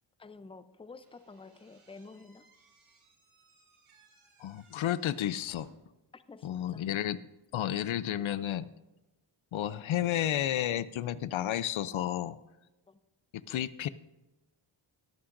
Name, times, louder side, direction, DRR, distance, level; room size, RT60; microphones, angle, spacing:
voice 1, 0.2-2.4 6.1-6.9 12.9-13.0, left 4 dB, 10° left, 12 dB, 0.5 m, -50 dB
Slam / Squeak, 1.0-6.0, right 3 dB, 80° right, 3.1 m, -63 dB
voice 2, 4.4-5.7 6.4-7.2 7.5-8.7 9.5-12.4 13.5-13.9, left 11 dB, 70° left, 16 dB, 0.6 m, -31 dB
21.0 x 8.6 x 2.6 m, 1.0 s
cardioid pair, 70°, 49 cm